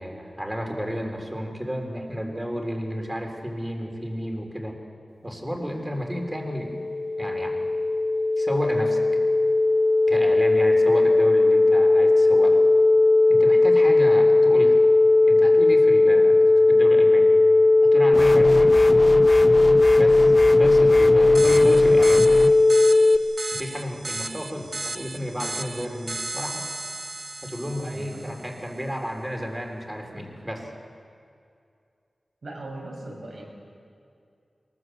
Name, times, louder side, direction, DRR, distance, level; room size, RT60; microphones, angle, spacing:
voice 1, 0.0-4.8 5.2-6.7 7.2-7.6 8.4-9.0 10.1-12.6 13.3-14.8 15.3-16.4 16.7-17.3 17.8-18.8 19.9-20.3 20.6-22.7 23.5-26.7 27.4-30.7, equal, 15° right, 3 dB, 3.9 m, -32 dB
sound 1, 6.1-23.2, left 2 dB, 55° left, 1.3 m, -17 dB
sound 2, 18.1-22.5, left 1 dB, 15° left, 0.8 m, -29 dB
sound 3, 21.3-28.5, right 2 dB, 40° right, 1.0 m, -35 dB
voice 2, 27.7-28.4 32.4-33.4, right 2 dB, 75° right, 0 dB, 6.6 m, -39 dB
23.0 x 20.5 x 8.0 m, 2.4 s
wide cardioid pair, 70°, 0 cm